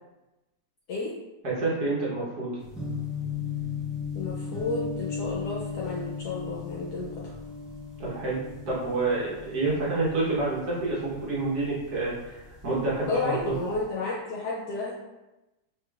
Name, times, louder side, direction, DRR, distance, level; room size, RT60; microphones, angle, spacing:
voice 1, 1.4-2.5 8.0-8.4 8.7-12.4 12.6-13.5, right 3 dB, 60° right, -6 dB, 1.5 m, -28 dB
sound 1, 2.6-12.7 13.0-13.7, left 5 dB, ahead, 0.5 m, -36 dB
voice 2, 4.1-7.1 13.1-14.9, left 3 dB, 70° left, -4 dB, 1.1 m, -31 dB
4.8 x 3.4 x 2.3 m, 1.0 s
omnidirectional pair, 1.9 m